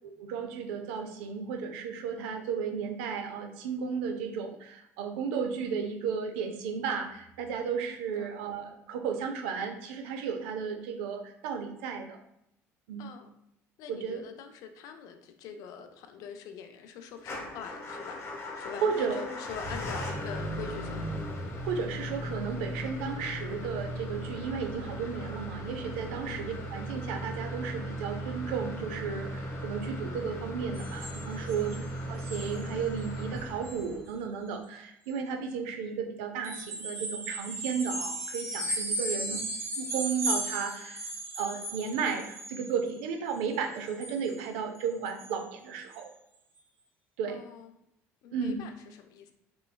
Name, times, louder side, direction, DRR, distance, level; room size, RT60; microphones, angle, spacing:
voice 1, 0.0-12.2 12.9-13.1 13.9-14.2 18.8-19.3 21.6-39.4 39.8-41.1 41.4-46.1 47.2-47.4 48.3-48.6, right 6 dB, 90° right, 6 dB, 0.4 m, -34 dB
voice 2, 13.0-13.3 13.8-18.2 18.6-21.0 26.3-26.4 31.7-31.8 39.1-39.4 47.3-47.7 48.2-49.3, left 7 dB, 70° left, 7 dB, 0.4 m, -44 dB
Motor vehicle (road) / Engine starting / Idling, 17.2-34.2, equal, 45° left, 0.9 m, -37 dB
sound 1, 30.7-31.8 32.2-32.7 33.0-33.2 33.6-33.9 36.4-42.9 43.3-44.5 44.7-44.8 45.0-45.4 45.9-46.0, right 1 dB, 50° right, 1.0 m, -36 dB
3.1 x 3.0 x 2.2 m, 0.79 s
supercardioid pair, 85°, 6 cm